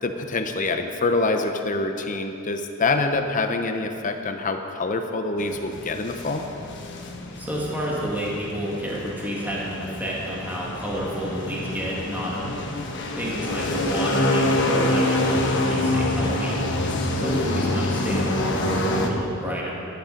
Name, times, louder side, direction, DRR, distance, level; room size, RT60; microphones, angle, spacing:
voice 1, 0.0-6.4, left 3 dB, 35° left, 6 dB, 0.8 m, -25 dB
sound 1, 5.4-19.1, left 1 dB, 60° left, 1.2 m, -26 dB
voice 2, 7.4-12.5 13.1-16.6 17.1-19.7, right 1 dB, 10° right, -5 dB, 1.7 m, -29 dB
11.5 x 10.0 x 5.2 m, 2.7 s
head